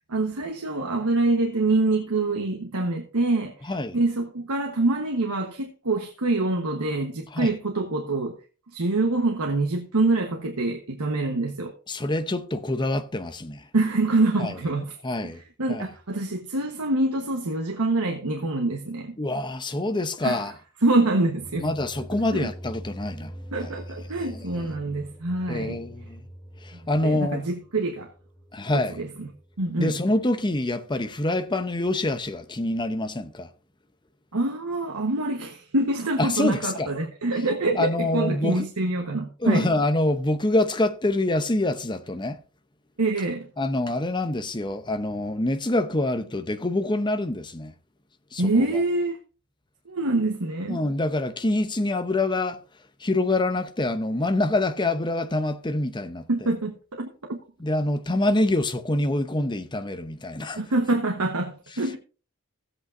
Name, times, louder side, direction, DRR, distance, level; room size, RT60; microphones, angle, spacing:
voice 1, 0.1-8.4 8.7-11.7 13.7-15.0 15.6-19.1 20.2-20.5 20.8-21.7 22.3-22.5 23.5-25.8 27.0-28.1 28.7-29.3 29.6-30.0 34.3-39.7 43.0-43.5 48.4-49.2 49.9-50.8 56.3-57.4 60.5-62.0, right 2 dB, 90° right, 1.2 m, -25 dB
voice 2, 11.9-13.6 14.4-14.5 15.0-15.4 15.7-15.9 19.2-20.5 21.6-23.3 23.6-23.7 24.2-24.7 25.5-26.3 26.6-27.4 28.5-29.0 29.8-33.5 36.2-36.9 37.8-38.7 39.4-42.4 43.6-47.7 48.3-48.8 50.7-52.6 53.0-56.5 57.6-60.6, left 2 dB, 20° left, 0.8 m, -26 dB
sound 1, 21.3-30.1, equal, ahead, 1.4 m, -43 dB
16.0 x 8.1 x 2.6 m
head